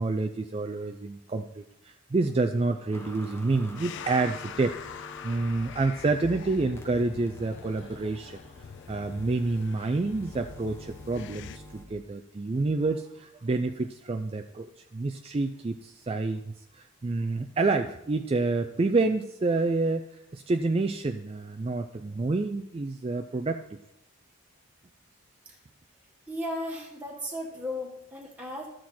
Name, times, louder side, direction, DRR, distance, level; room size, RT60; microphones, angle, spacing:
voice 1, 0.0-8.4 8.9-16.4 16.7-20.1 20.3-23.8, right 3 dB, 25° right, 6 dB, 0.3 m, -28 dB
sound 1, 2.9-11.9, left 1 dB, 10° left, 0.9 m, -48 dB
sound 2, 3.8-11.6, left 7 dB, 50° left, 0.3 m, -44 dB
voice 2, 26.3-28.7, left 1 dB, 5° right, -3 dB, 1.5 m, -35 dB
13.0 x 7.6 x 4.3 m, 0.81 s
head